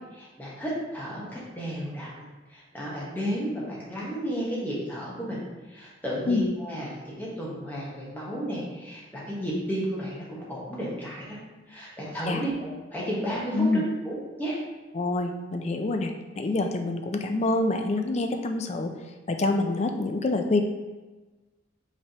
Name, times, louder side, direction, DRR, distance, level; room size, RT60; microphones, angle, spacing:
voice 1, 0.1-5.4 5.7-11.4 11.7-14.6, equal, 10° left, -7 dB, 1.1 m, -33 dB
voice 2, 14.9-18.9 19.3-20.6, left 2 dB, 35° left, 5 dB, 0.3 m, -26 dB
5.4 x 3.3 x 2.9 m, 1.2 s
head